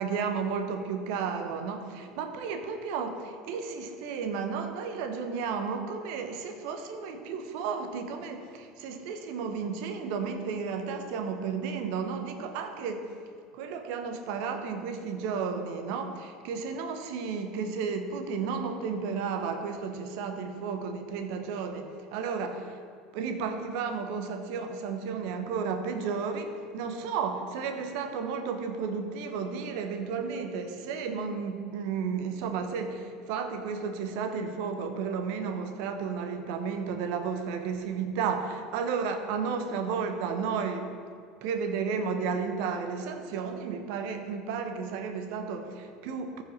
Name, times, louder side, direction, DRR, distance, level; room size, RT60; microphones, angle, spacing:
voice 1, 0.0-13.1 13.5-22.8 23.1-40.9 41.4-46.4, right 5 dB, 60° right, 7 dB, 1.0 m, -33 dB
14.0 x 5.1 x 4.2 m, 2.1 s
figure-of-eight pair, 70°, 0 cm